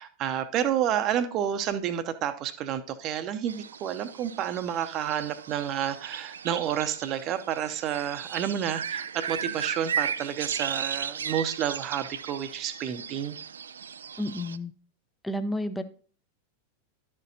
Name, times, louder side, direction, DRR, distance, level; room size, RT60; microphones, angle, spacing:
voice 1, 0.0-13.4, right 10 dB, 35° right, 11 dB, 0.7 m, -30 dB
sound 1, 3.5-14.6, right 7 dB, 70° right, 0.3 m, -36 dB
voice 2, 14.2-14.7 15.2-15.8, left 1 dB, 5° left, 10 dB, 0.6 m, -31 dB
11.5 x 6.6 x 2.8 m, 0.43 s
figure-of-eight pair, 90°, 0 cm